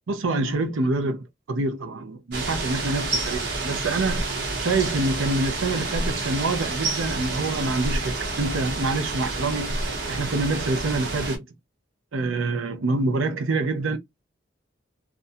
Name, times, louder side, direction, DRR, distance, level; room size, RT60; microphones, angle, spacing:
voice 1, 0.1-4.3 4.6-9.8 10.1-11.5 12.1-14.0, right 3 dB, 85° right, 0.6 m, -26 dB
sound 1, 2.3-11.4, right 2 dB, 55° right, 0.9 m, -29 dB
2.5 x 2.2 x 2.5 m
head